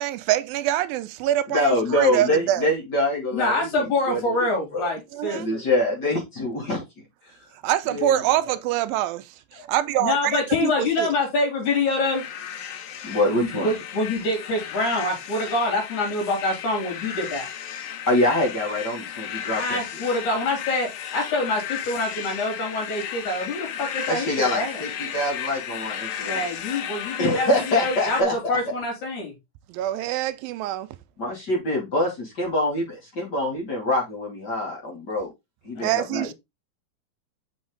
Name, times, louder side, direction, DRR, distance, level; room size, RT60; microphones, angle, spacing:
voice 1, 0.0-2.7 5.1-5.5 7.6-9.3 9.7-11.1 29.7-30.9 35.8-36.3, right 13 dB, 85° right, 2.4 m, -25 dB
voice 2, 1.5-4.9 5.3-6.8 7.9-8.6 9.5-9.7 13.0-13.7 18.1-19.8 24.1-26.4 27.2-28.6 31.2-35.3 35.6-36.3, left 1 dB, 30° left, 3.1 m, -25 dB
voice 3, 3.3-5.6 10.0-12.2 13.4-17.5 19.5-24.3 24.5-24.8 26.2-29.3 35.8-35.9 36.1-36.3, left 2 dB, 60° left, 4.7 m, -26 dB
sound 1, 12.0-28.2, left 9 dB, 85° left, 2.8 m, -34 dB
6.2 x 6.0 x 3.9 m
omnidirectional pair, 4.0 m